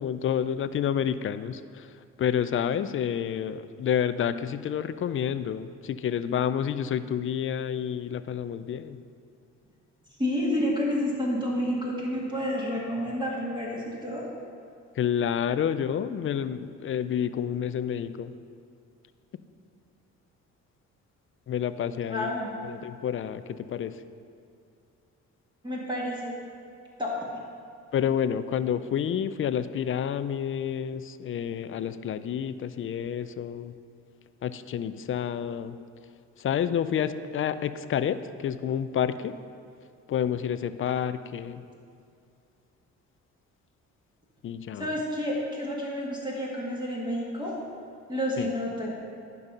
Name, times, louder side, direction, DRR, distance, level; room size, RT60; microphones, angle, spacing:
voice 1, 0.0-1.9 2.2-9.0 15.0-18.3 21.5-22.3 22.6-24.0 27.9-33.7 34.4-35.8 36.4-39.4 40.1-41.6 44.4-44.9 48.4-48.5, left 9 dB, 45° left, 13 dB, 0.4 m, -29 dB
voice 2, 10.2-14.3 22.1-22.6 25.6-26.3 27.0-27.4 44.8-47.6 48.1-48.9, left 1 dB, 15° right, -5 dB, 1.9 m, -30 dB
11.0 x 5.4 x 5.4 m, 2.5 s
cardioid pair, 90°, 30 cm